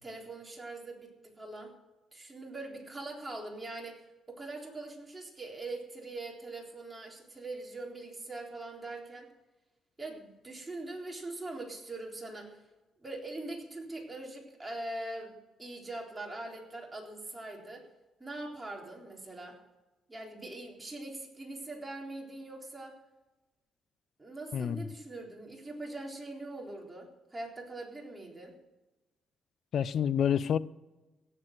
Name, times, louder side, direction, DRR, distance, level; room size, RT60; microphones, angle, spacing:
voice 1, 0.0-1.7 2.1-9.3 10.0-12.6 13.0-17.9 18.2-19.6 20.1-23.0 24.2-28.5, right 2 dB, 15° right, 3.8 m, -42 dB
voice 2, 24.5-24.8 29.7-30.6, left 8 dB, 60° left, 0.5 m, -28 dB
17.0 x 7.6 x 7.8 m
cardioid pair, 90°, 0 cm